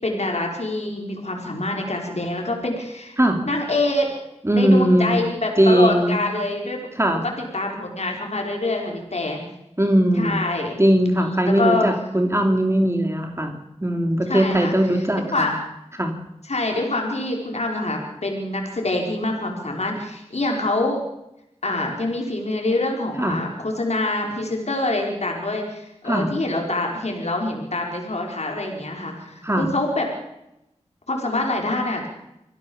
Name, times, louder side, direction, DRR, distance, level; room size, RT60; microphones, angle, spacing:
voice 1, 0.0-3.2 3.4-4.1 4.5-6.9 7.2-9.4 10.1-10.8 11.2-11.9 14.2-14.7 15.3-15.5 16.4-21.0 21.6-30.0 31.1-32.1, left 2 dB, 65° left, 1 dB, 5.1 m, -25 dB
voice 2, 4.4-5.2 5.6-6.2 7.0-7.2 9.8-10.4 10.8-15.5 16.0-16.1 23.2-23.4 26.0-26.3 29.4-29.7, right 1 dB, 20° right, 4 dB, 3.2 m, -19 dB
26.5 x 16.5 x 7.3 m, 0.87 s
wide cardioid pair, 55°, 12 cm